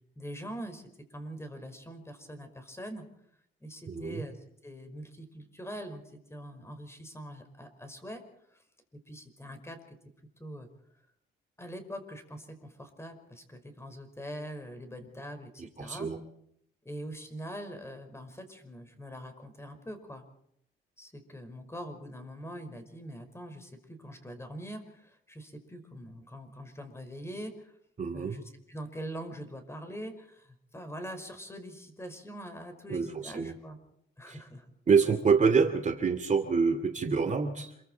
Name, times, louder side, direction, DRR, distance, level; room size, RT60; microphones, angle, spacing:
voice 1, 0.2-0.8 1.1-3.0 3.6-4.4 4.6-6.0 6.3-8.2 8.5-8.6 9.1-10.0 10.4-10.7 11.6-16.1 16.8-20.2 21.0-27.7 28.1-33.8 34.2-34.7, equal, 15° left, 7 dB, 5.5 m, -43 dB
voice 2, 3.9-4.2 15.8-16.2 28.0-28.3 32.9-33.5 34.3-34.4 34.9-37.7, right 5 dB, 40° right, 6 dB, 2.5 m, -26 dB
27.5 x 23.5 x 4.6 m, 0.72 s
cardioid pair, 90°, 20 cm